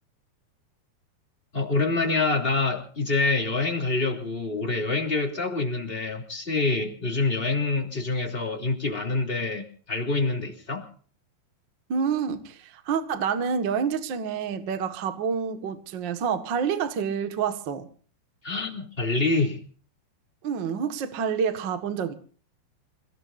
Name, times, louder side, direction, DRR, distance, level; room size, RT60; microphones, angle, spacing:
voice 1, 1.5-10.9 18.4-19.6, left 3 dB, 15° left, 2.5 m, -26 dB
voice 2, 11.9-17.9 20.4-22.1, right 6 dB, 65° right, 1.1 m, -28 dB
29.0 x 17.5 x 2.6 m
omnidirectional pair, 4.7 m